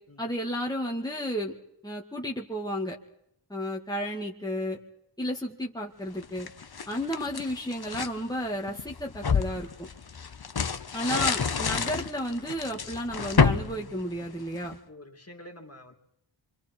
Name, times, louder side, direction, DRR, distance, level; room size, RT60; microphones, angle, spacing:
voice 1, 0.2-1.5 1.8-3.0 3.5-4.8 5.2-6.5 6.9-9.9 10.9-14.8, equal, 10° left, -1 dB, 2.1 m, -32 dB
sound 1, 6.2-8.2 8.7-14.7, left 5 dB, 50° left, 1.1 m, -29 dB
voice 2, 14.9-15.9, left 1 dB, 30° left, 4 dB, 3.0 m, -48 dB
27.0 x 25.5 x 4.5 m, 0.78 s
wide cardioid pair, 75°, 47 cm